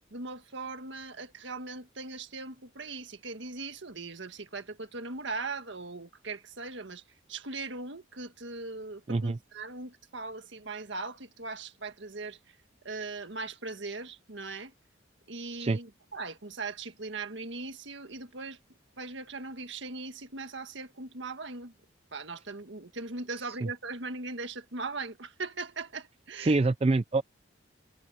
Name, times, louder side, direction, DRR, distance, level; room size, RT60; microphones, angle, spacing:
voice 1, 0.1-7.0 7.3-12.6 12.8-14.7 15.3-18.6 19.0-21.7 22.1-26.6, right 3 dB, 70° right, 1.7 m, -39 dB
voice 2, 9.1-9.4 15.6-15.8 26.4-27.2, right 3 dB, 30° right, 0.4 m, -25 dB
head